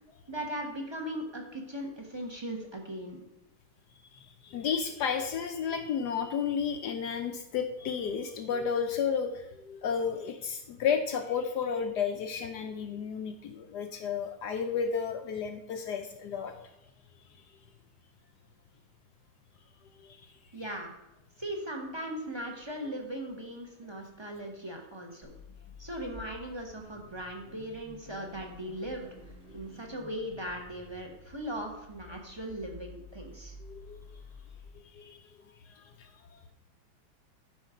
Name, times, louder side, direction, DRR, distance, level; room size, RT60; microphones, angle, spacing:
voice 1, 0.3-3.2 20.5-20.9 21.4-25.3 25.8-29.1 29.5-33.5, right 1 dB, 15° right, 1 dB, 1.0 m, -38 dB
voice 2, 4.2-16.5 20.1-20.2 33.6-34.0 34.7-35.3 35.6-36.4, left 6 dB, 70° left, 6 dB, 1.0 m, -32 dB
Car / Idling / Accelerating revving vroom, 25.2-34.7, left 2 dB, 45° right, 2.9 m, -51 dB
12.0 x 5.1 x 5.0 m, 0.90 s
omnidirectional pair, 2.2 m